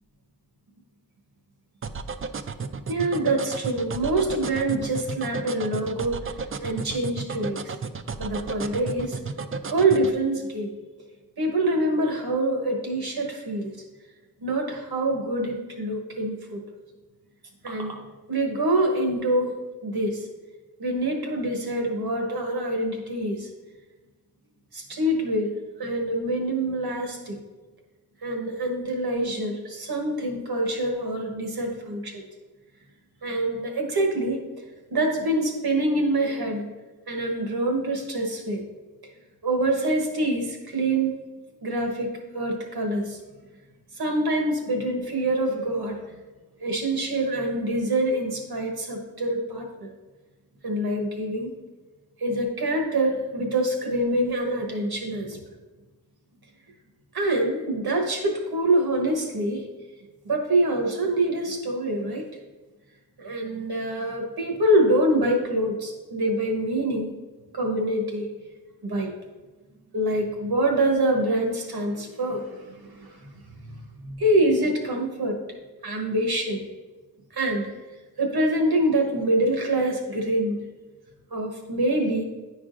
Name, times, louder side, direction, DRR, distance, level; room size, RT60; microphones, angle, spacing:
sound 1, 1.8-10.1, right 5 dB, 35° right, 0.4 m, -33 dB
voice 1, 2.9-6.2 6.6-7.7 8.2-9.2 9.7-10.7 11.4-13.7 14.4-16.6 17.6-18.0 18.3-19.5 19.8-20.3 20.8-23.5 24.7-25.5 25.8-27.4 28.2-32.2 33.2-34.4 34.9-36.6 37.1-38.6 39.4-41.1 41.6-43.2 44.0-46.0 46.6-49.9 50.6-51.5 52.2-55.4 57.1-59.6 60.2-62.2 63.2-67.1 67.5-68.3 68.8-69.1 69.9-75.4 75.8-76.6 77.3-77.7 78.2-80.6 81.3-82.2, right 1 dB, 85° right, 2 dB, 1.2 m, -25 dB
9.9 x 4.7 x 2.5 m, 1.2 s
wide cardioid pair, 55°, 37 cm